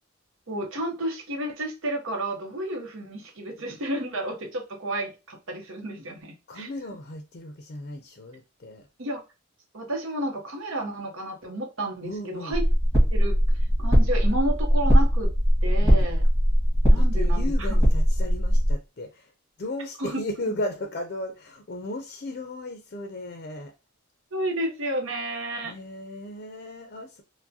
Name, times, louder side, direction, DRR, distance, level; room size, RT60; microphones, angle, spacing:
voice 1, 0.5-6.7 9.0-9.2 9.7-12.6 13.1-15.3 15.6-16.2 16.9-17.8 20.0-20.2 24.3-25.7, right 1 dB, 80° right, 0.8 m, -31 dB
voice 2, 6.5-8.9 12.0-12.6 15.8-16.1 17.0-19.3 19.6-23.7 25.6-27.2, left 1 dB, 50° left, 0.5 m, -35 dB
sound 1, 12.5-18.7, equal, 15° right, 1.5 m, -20 dB
4.6 x 2.1 x 2.7 m
head